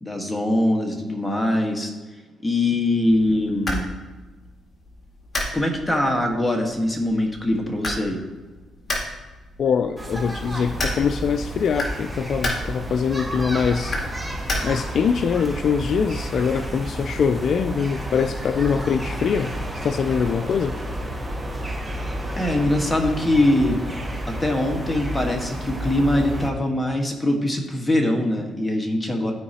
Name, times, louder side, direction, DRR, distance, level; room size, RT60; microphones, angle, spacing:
voice 1, 0.0-1.9 2.4-3.9 5.5-8.2 22.4-23.8 24.3-29.3, left 1 dB, 10° left, 1 dB, 1.5 m, -22 dB
sound 1, 3.1-15.1, left 1 dB, 35° left, 2.1 m, -33 dB
voice 2, 9.6-14.0 14.6-19.5 19.8-20.8, left 6 dB, 60° left, 9 dB, 0.3 m, -23 dB
sound 2, 10.0-26.5, right 1 dB, 10° right, 1.2 m, -31 dB
13.0 x 4.7 x 2.9 m, 1.3 s
cardioid pair, 90°, 0 cm